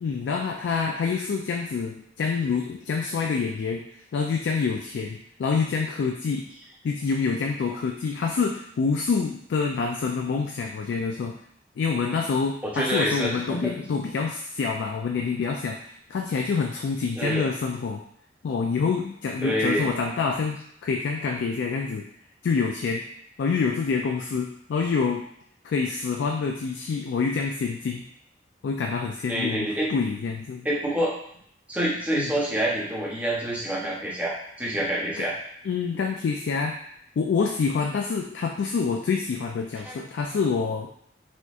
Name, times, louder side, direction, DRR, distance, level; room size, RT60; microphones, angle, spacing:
voice 1, 0.0-3.8 4.1-6.5 6.8-11.4 11.8-18.0 18.4-22.1 22.4-23.0 23.4-25.3 25.6-28.0 28.6-30.7 32.2-32.3 35.2-35.3 35.6-36.8 37.2-40.9, left 5 dB, 80° left, 2 dB, 0.3 m, -27 dB
voice 2, 12.6-13.8 17.2-17.4 19.4-19.9 29.3-29.9 30.6-31.1 31.7-35.3 39.8-39.9, equal, 10° right, -5 dB, 0.7 m, -27 dB
4.2 x 2.7 x 2.4 m, 0.68 s
head